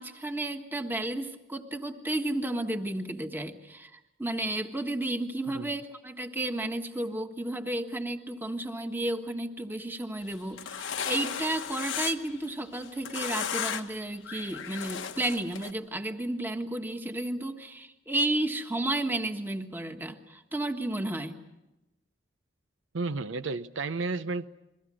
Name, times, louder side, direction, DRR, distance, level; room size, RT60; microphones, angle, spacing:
voice 1, 0.0-21.4, right 1 dB, 10° right, 6 dB, 1.5 m, -32 dB
sound 1, 10.3-12.4 12.7-14.0 14.2-15.7, left 8 dB, 75° left, 1.2 m, -35 dB
voice 2, 22.9-24.5, right 3 dB, 80° right, 12 dB, 0.8 m, -32 dB
29.0 x 22.5 x 6.3 m, 0.99 s
head